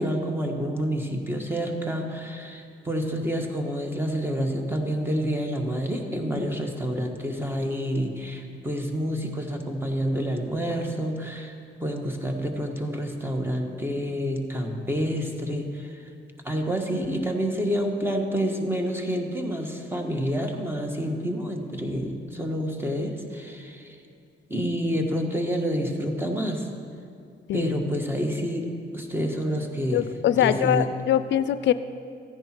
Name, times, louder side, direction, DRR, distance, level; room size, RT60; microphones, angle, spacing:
voice 1, 0.0-11.5 11.8-16.1 16.4-24.0 24.5-26.7 27.5-30.1 30.4-30.9, equal, 10° right, 3 dB, 1.5 m, -28 dB
voice 2, 29.9-31.7, left 11 dB, 65° left, 13 dB, 0.4 m, -23 dB
14.5 x 10.0 x 4.5 m, 2.4 s
cardioid pair, 90°, 20 cm